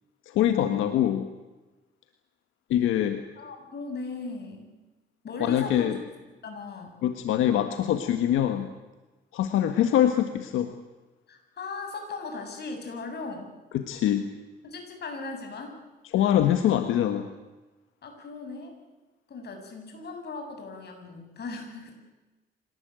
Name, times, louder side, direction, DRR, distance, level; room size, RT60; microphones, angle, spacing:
voice 1, 0.3-1.3 2.7-3.2 5.4-6.0 7.0-8.7 9.3-10.7 13.7-14.3 16.1-17.3, left 11 dB, 90° left, 8 dB, 1.6 m, -24 dB
voice 2, 3.4-4.7 5.2-5.9 6.4-6.9 11.3-13.5 14.6-15.8 18.0-18.8 19.3-21.9, left 3 dB, 55° left, 4 dB, 7.5 m, -38 dB
25.0 x 19.0 x 9.2 m, 1.2 s
cardioid pair, 90°, 20 cm